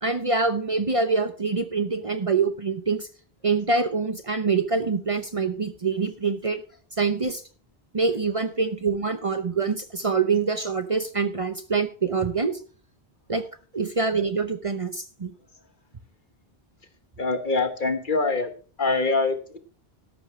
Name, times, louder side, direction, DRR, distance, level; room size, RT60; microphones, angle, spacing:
voice 1, 0.0-3.1 3.4-6.6 7.0-7.4 7.9-12.6 13.3-13.4 13.7-15.3, right 4 dB, 35° right, 10 dB, 0.8 m, -25 dB
voice 2, 17.2-18.5 18.8-19.6, left 3 dB, 50° left, 8 dB, 1.5 m, -24 dB
13.5 x 11.0 x 3.2 m, 0.39 s
omnidirectional pair, 1.0 m